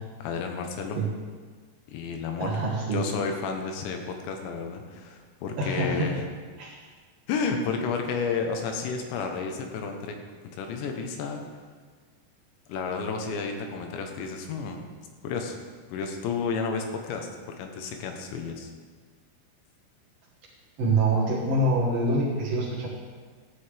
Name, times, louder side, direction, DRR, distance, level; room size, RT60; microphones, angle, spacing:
voice 1, 0.2-1.0 1.9-2.6 2.9-6.2 7.3-10.1 10.4-11.4 12.7-14.9 15.2-15.6 15.9-17.3 17.6-18.7, left 5 dB, 90° left, 4 dB, 3.3 m, -31 dB
voice 2, 2.4-3.0 5.6-6.1 6.6-6.7 20.8-22.9, right 2 dB, 65° right, -5 dB, 1.5 m, -25 dB
13.0 x 10.5 x 3.4 m, 1.5 s
omnidirectional pair, 5.0 m